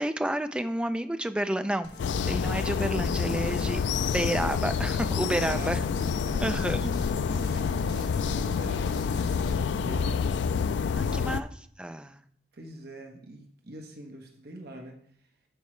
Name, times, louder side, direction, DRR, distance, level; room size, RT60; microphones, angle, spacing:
voice 1, 0.0-1.9 2.3-5.8 6.4-6.9 10.9-11.5 11.8-12.2, right 1 dB, 5° right, 9 dB, 0.3 m, -30 dB
sound 1, 1.8-9.6, left 1 dB, 65° left, 1.1 m, -42 dB
sound 2, 2.0-11.4, left 6 dB, 80° left, 0.3 m, -28 dB
voice 2, 5.2-6.9 7.2-10.3 11.0-11.3 12.5-15.3, right 1 dB, 60° right, 2 dB, 1.1 m, -44 dB
11.5 x 4.7 x 3.2 m, 0.62 s
head